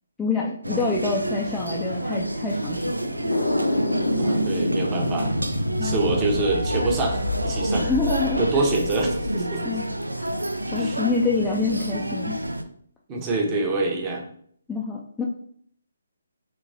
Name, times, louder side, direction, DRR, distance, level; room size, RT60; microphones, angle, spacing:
voice 1, 0.2-3.3 5.8-6.1 7.8-8.4 9.6-9.9 10.2-10.3 10.7-12.4 14.7-15.2, left 4 dB, 5° left, -4 dB, 0.3 m, -27 dB
sound 1, 0.6-12.6, right 1 dB, 85° right, 0.3 m, -29 dB
sound 2, 3.3-9.3, left 1 dB, 80° left, 0.7 m, -27 dB
voice 2, 4.2-5.3 5.8-7.9 8.4-9.8 10.7-11.0 13.1-14.2, right 3 dB, 20° right, 1 dB, 0.7 m, -26 dB
4.0 x 2.9 x 2.6 m, 0.62 s
figure-of-eight pair, 140°, 0 cm